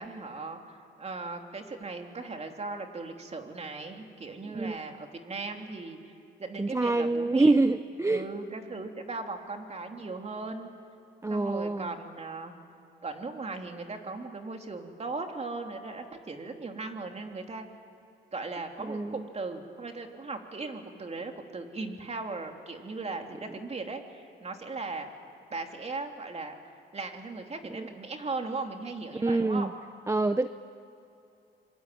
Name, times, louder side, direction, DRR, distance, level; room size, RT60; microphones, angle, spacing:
voice 1, 0.0-6.1 6.4-7.5 8.1-10.7 11.3-12.5 13.0-17.7 18.3-25.1 25.5-26.5 26.9-29.7, right 3 dB, 35° right, 4 dB, 3.1 m, -38 dB
voice 2, 6.6-8.3 11.2-11.9 18.8-19.2 27.7-27.9 29.2-29.7 30.1-30.5, right 2 dB, 15° right, 11 dB, 0.7 m, -26 dB
26.5 x 24.5 x 9.3 m, 2.7 s
cardioid pair, 90°, 20 cm